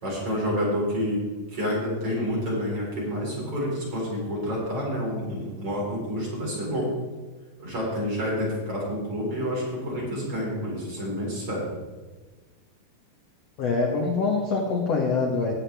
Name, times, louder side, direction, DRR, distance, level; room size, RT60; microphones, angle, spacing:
voice 1, 0.0-1.2 1.5-6.9 7.6-11.7, equal, 35° right, -5 dB, 4.8 m, -28 dB
voice 2, 13.6-15.5, left 4 dB, 75° left, 0 dB, 1.4 m, -24 dB
18.0 x 8.0 x 3.4 m, 1.3 s
omnidirectional pair, 4.7 m